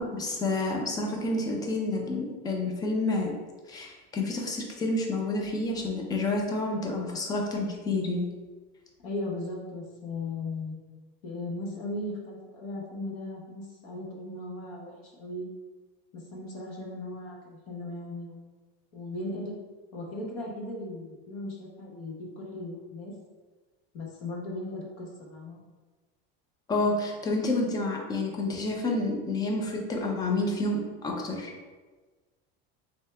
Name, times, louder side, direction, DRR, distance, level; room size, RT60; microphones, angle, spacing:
voice 1, 0.0-3.3 3.7-8.3 26.7-31.5, left 2 dB, 15° left, 1 dB, 0.3 m, -29 dB
voice 2, 9.0-10.7 11.2-15.5 16.1-18.4 18.9-19.5 19.9-23.1 23.9-25.6, left 2 dB, 55° left, -2 dB, 1.0 m, -37 dB
3.2 x 2.7 x 3.2 m, 1.3 s
cardioid pair, 155°, 29 cm